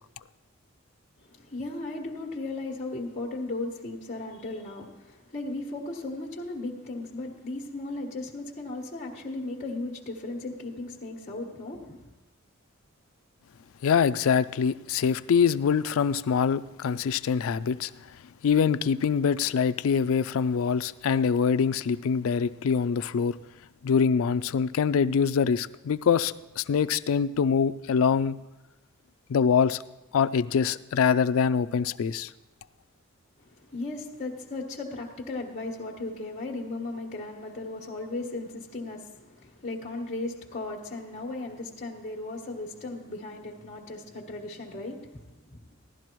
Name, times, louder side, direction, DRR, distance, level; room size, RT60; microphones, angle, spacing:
voice 1, 1.2-12.1 33.6-45.6, left 2 dB, 30° left, 1.4 m, -36 dB
voice 2, 13.8-17.9 18.4-23.4 23.8-28.4 29.3-29.8 30.1-32.3, left 6 dB, 70° left, 0.3 m, -24 dB
16.5 x 11.5 x 3.1 m
head